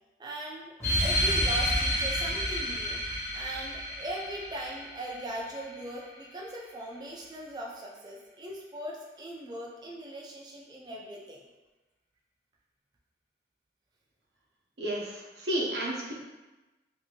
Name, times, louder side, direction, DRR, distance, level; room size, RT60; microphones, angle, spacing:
voice 1, 0.2-0.7 1.0-3.0 3.3-11.4, right 1 dB, 25° right, -2 dB, 0.4 m, -39 dB
sound 1, 0.8-5.8, equal, 15° left, 0.9 m, -30 dB
voice 2, 14.8-16.1, right 1 dB, 75° right, -4 dB, 0.7 m, -32 dB
2.7 x 2.6 x 2.8 m, 1.1 s
head